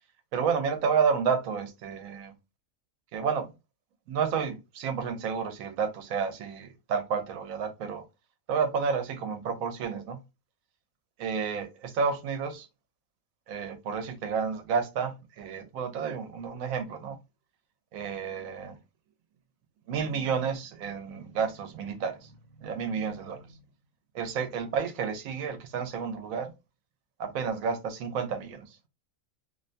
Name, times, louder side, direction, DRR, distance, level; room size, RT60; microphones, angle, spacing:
voice 1, 0.3-2.1 3.1-3.5 4.1-8.0 8.5-10.2 11.2-12.7 13.5-17.2 17.9-18.7 19.9-22.2 22.6-23.4 24.2-26.5 27.2-28.6, right 6 dB, 90° right, 1.0 m, -30 dB
2.6 x 2.1 x 2.5 m
omnidirectional pair, 1.4 m